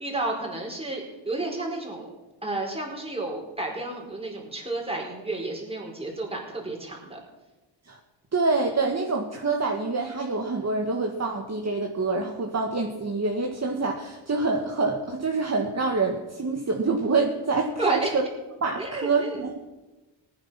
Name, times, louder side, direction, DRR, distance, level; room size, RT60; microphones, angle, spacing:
voice 1, 0.0-2.1 2.4-7.2 17.8-18.1 18.8-19.4, right 2 dB, 10° right, -1 dB, 4.8 m, -31 dB
voice 2, 8.3-18.2 18.6-19.6, right 3 dB, 35° right, 1 dB, 1.9 m, -26 dB
19.0 x 9.9 x 5.9 m, 1.1 s
cardioid pair, 90°, 47 cm